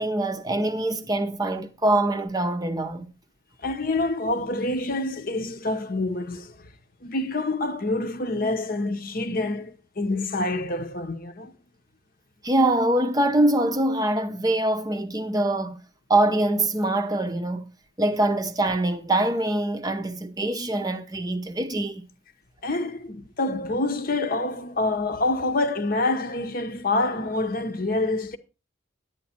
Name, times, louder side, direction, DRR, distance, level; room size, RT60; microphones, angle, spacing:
voice 1, 0.0-3.1 12.4-15.8 16.1-17.7 18.0-22.1, right 1 dB, 20° right, 0.7 m, -24 dB
voice 2, 3.6-6.7 7.0-11.5 22.6-28.4, left 2 dB, 45° left, 0.9 m, -27 dB
11.0 x 9.1 x 4.3 m
head